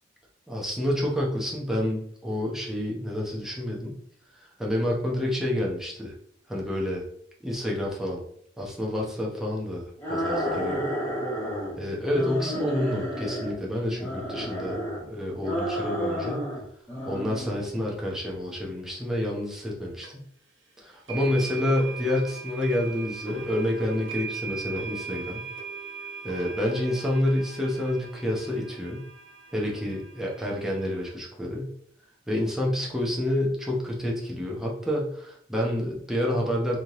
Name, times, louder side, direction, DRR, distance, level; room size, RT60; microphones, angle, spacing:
voice 1, 0.5-4.0 4.6-6.1 6.5-7.0 7.4-8.2 8.6-10.9 11.8-16.5 17.1-20.1 20.8-25.4 26.2-29.0 29.5-31.7 32.3-36.8, left 1 dB, ahead, -3 dB, 0.9 m, -28 dB
sound 1, 10.0-11.7 12.1-13.6 14.0-15.0 15.4-16.6 16.9-17.6, equal, 15° left, 1.7 m, -31 dB
sound 2, 20.0-20.1 21.1-31.1, right 5 dB, 80° right, 0.9 m, -40 dB
3.6 x 3.0 x 3.7 m, 0.66 s
head